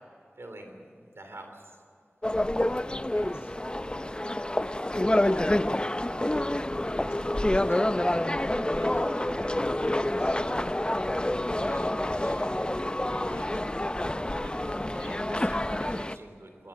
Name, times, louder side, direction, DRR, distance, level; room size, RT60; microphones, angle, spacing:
voice 1, 0.4-1.8 14.4-16.7, right 1 dB, 90° right, 5 dB, 3.4 m, -46 dB
sound 1, 2.2-16.2, left 1 dB, 20° left, 0.6 m, -28 dB
voice 2, 2.8-3.6 5.1-8.1 8.6-10.4 11.2-13.7, left 1 dB, 85° left, 3 dB, 4.4 m, -46 dB
23.0 x 19.0 x 7.5 m, 2.5 s
wide cardioid pair, 45°, 4 cm